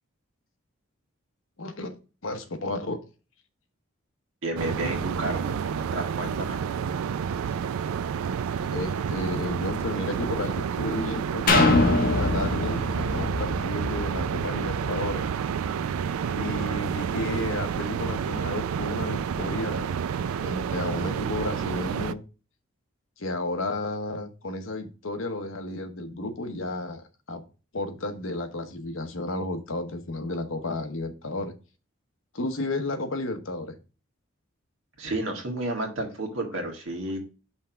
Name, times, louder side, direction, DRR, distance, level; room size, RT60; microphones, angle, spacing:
voice 1, 1.6-1.9 2.2-3.0 7.7-7.9 8.6-15.3 16.3-20.0 20.4-22.2 23.2-27.4 27.7-31.5 32.3-33.8, left 2 dB, 70° left, 7 dB, 1.0 m, -32 dB
voice 2, 4.4-6.6 35.0-37.2, right 1 dB, 70° right, 2 dB, 1.7 m, -31 dB
sound 1, 4.6-22.1, right 7 dB, 90° right, 0.4 m, -29 dB
sound 2, 11.5-15.3 15.8-15.9, left 2 dB, 45° left, 1.2 m, -24 dB
5.7 x 3.4 x 5.6 m, 0.33 s
head